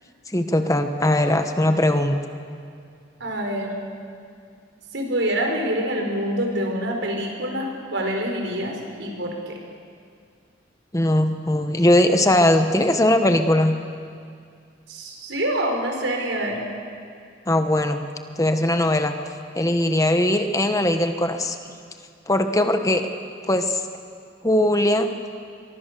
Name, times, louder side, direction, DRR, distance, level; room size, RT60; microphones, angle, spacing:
voice 1, 0.3-2.2 10.9-13.8 17.5-18.0 18.4-19.1 19.5-21.6 22.3-23.1 23.5-23.8 24.4-25.1, left 1 dB, 20° left, 7 dB, 1.2 m, -20 dB
voice 2, 3.2-3.8 4.9-9.6 14.9-16.6, right 1 dB, 85° right, 1 dB, 5.1 m, -26 dB
24.5 x 23.0 x 6.9 m, 2.3 s
head